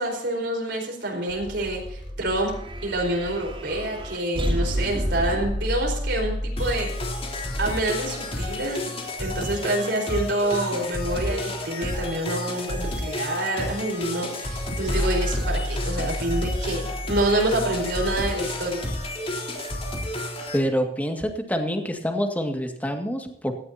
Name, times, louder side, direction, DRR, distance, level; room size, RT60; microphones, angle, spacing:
voice 1, 0.0-2.5 2.8-6.9 7.6-8.9 9.2-18.9, right 1 dB, 70° right, 0 dB, 4.5 m, -27 dB
sound 1, 1.3-8.6 14.8-18.9, equal, 35° right, 3.2 m, -30 dB
sound 2, 6.6-20.6, left 1 dB, 35° left, 3.6 m, -31 dB
voice 2, 20.5-23.5, equal, 10° left, 4 dB, 1.9 m, -26 dB
17.5 x 15.0 x 2.8 m, 0.72 s
head